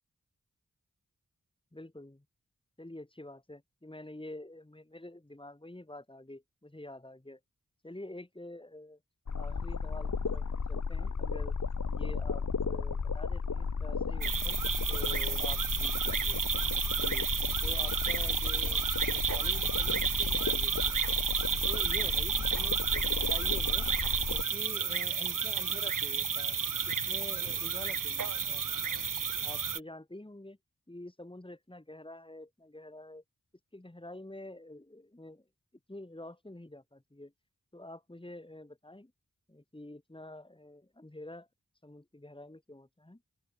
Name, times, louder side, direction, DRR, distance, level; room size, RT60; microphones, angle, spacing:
voice 1, 1.7-2.2 2.8-7.4 7.8-9.0 9.3-11.5 11.9-14.6 14.9-16.4 17.0-17.3 17.6-21.0 21.6-23.9 24.3-26.6 26.9-28.6 29.4-30.6 30.9-33.2 33.7-35.5 35.9-37.3 37.7-39.1 39.5-41.5 41.8-43.2, left 1 dB, 15° left, 4.8 m, -47 dB
sound 1, 9.3-24.4, left 5 dB, 65° left, 2.5 m, -34 dB
sound 2, 14.2-29.8, right 6 dB, 85° right, 1.8 m, -31 dB
open air
wide cardioid pair, 65°, 32 cm